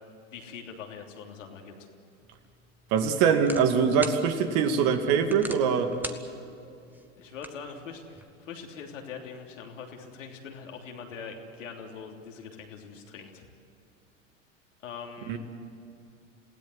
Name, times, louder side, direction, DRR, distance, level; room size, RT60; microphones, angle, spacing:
voice 1, 0.3-1.9 7.2-13.5 14.8-15.4, left 6 dB, 75° left, 2 dB, 3.3 m, -42 dB
sound 1, 2.2-8.3, right 1 dB, 5° right, 1.6 m, -44 dB
voice 2, 2.9-5.9 15.3-15.4, right 6 dB, 50° right, 6 dB, 2.4 m, -23 dB
28.0 x 17.0 x 8.0 m, 2.7 s
hypercardioid pair, 85°, 38 cm